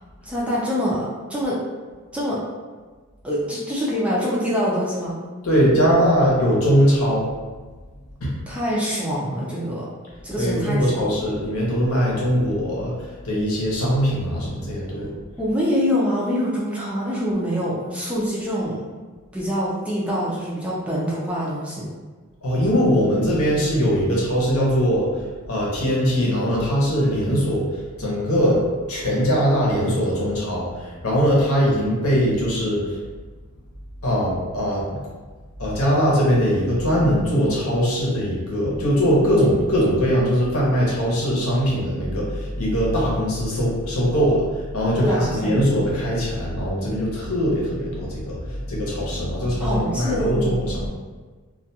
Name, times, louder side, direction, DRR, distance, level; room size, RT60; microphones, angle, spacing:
voice 1, 0.2-1.6 2.1-2.4 3.2-5.2 8.5-9.9 10.2-11.0 15.4-18.8 19.3-21.9 44.9-45.6 49.6-50.6, equal, 5° right, -7 dB, 0.4 m, -25 dB
voice 2, 5.4-7.3 8.2-8.3 10.4-15.1 22.4-28.6 28.9-33.0 34.0-35.0 35.6-50.9, equal, 70° left, -5 dB, 0.8 m, -21 dB
2.3 x 2.2 x 2.7 m, 1.4 s
head